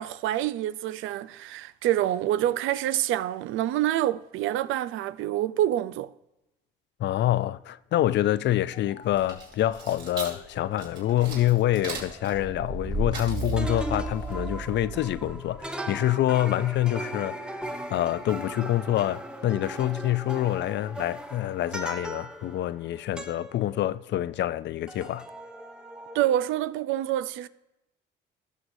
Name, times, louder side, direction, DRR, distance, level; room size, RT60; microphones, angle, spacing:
voice 1, 0.0-6.1 26.1-27.5, right 13 dB, 90° right, 0.4 m, -27 dB
voice 2, 7.0-25.3, left 13 dB, 65° left, 0.4 m, -26 dB
sound 1, 8.1-19.5, left 4 dB, 40° left, 1.2 m, -51 dB
sound 2, 9.0-15.6, right 2 dB, 65° right, 3.1 m, -35 dB
sound 3, 9.7-13.2 13.6-24.6 24.9-26.4, right 1 dB, 5° right, 0.8 m, -40 dB
17.5 x 6.3 x 2.6 m
cardioid pair, 90°, 20 cm